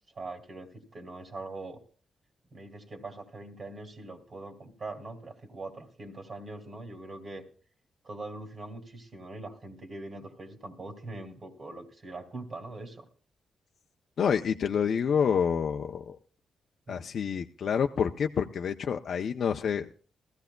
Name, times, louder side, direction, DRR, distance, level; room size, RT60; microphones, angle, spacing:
voice 1, 0.1-1.8 2.5-7.4 8.0-13.1 16.9-17.1, right 2 dB, 50° right, 3 dB, 2.4 m, -42 dB
voice 2, 14.2-16.2 16.9-19.9, left 7 dB, 65° left, 4 dB, 0.5 m, -28 dB
20.5 x 15.0 x 2.2 m, 0.42 s
cardioid pair, 65°, 0 cm